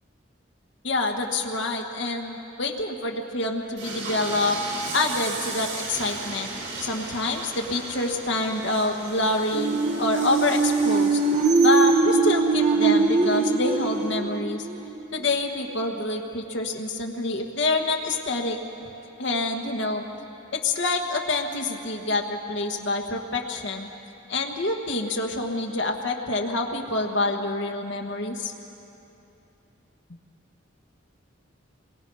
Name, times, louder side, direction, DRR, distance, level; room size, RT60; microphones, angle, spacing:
voice 1, 0.8-4.6 4.9-6.5 6.8-11.2 11.6-14.7 15.1-18.6 19.2-20.0 20.5-23.9 24.3-28.5, left 2 dB, 60° left, 2 dB, 1.4 m, -27 dB
Train, 3.8-14.1, right 3 dB, 55° right, 3.1 m, -36 dB
sound 1, 9.5-15.2, right 4 dB, 35° right, 1.3 m, -22 dB
28.0 x 22.0 x 5.5 m, 2.9 s
head